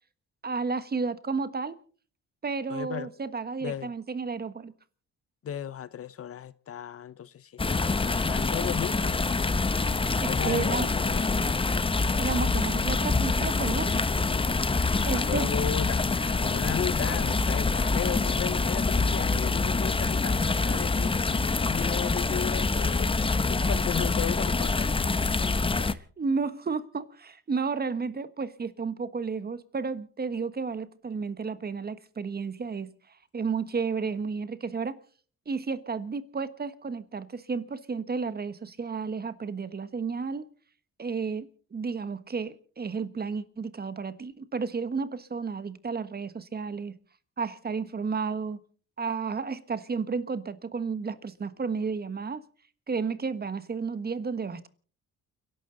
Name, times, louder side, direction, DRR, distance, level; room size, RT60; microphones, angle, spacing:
voice 1, 0.4-1.7 2.4-4.7 10.2-10.9 12.2-14.1 15.0-15.5 26.2-32.9 33.3-34.9 35.5-40.5 41.0-47.0 47.4-48.6 49.0-52.4 52.9-54.7, right 5 dB, 30° right, 1.4 m, -32 dB
voice 2, 2.7-3.1 3.6-3.9 5.4-9.6 10.3-11.4 14.9-23.2 23.5-24.9, left 9 dB, 50° left, 0.7 m, -35 dB
sound 1, 7.6-25.9, left 3 dB, 20° left, 0.8 m, -26 dB
29.5 x 12.0 x 3.9 m
cardioid pair, 90°, 30 cm